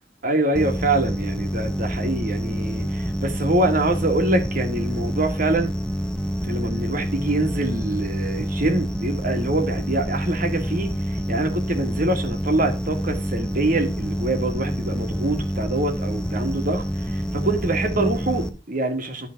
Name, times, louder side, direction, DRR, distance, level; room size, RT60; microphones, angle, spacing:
voice 1, 0.2-5.7 6.4-11.0 11.3-16.8 17.1-19.3, right 2 dB, 50° right, 1.8 m, -25 dB
sound 1, 0.6-18.5, equal, 5° left, 0.7 m, -27 dB
11.5 x 3.9 x 5.8 m
head